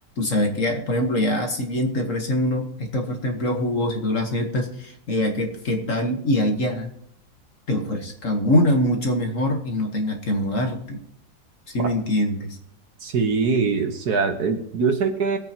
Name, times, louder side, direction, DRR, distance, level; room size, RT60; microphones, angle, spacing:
voice 1, 0.2-6.9 7.7-11.0 11.7-12.6, left 1 dB, 45° left, 4 dB, 1.6 m, -24 dB
voice 2, 13.0-15.4, right 4 dB, 60° right, 6 dB, 1.6 m, -23 dB
22.5 x 8.4 x 2.9 m, 0.74 s
omnidirectional pair, 2.0 m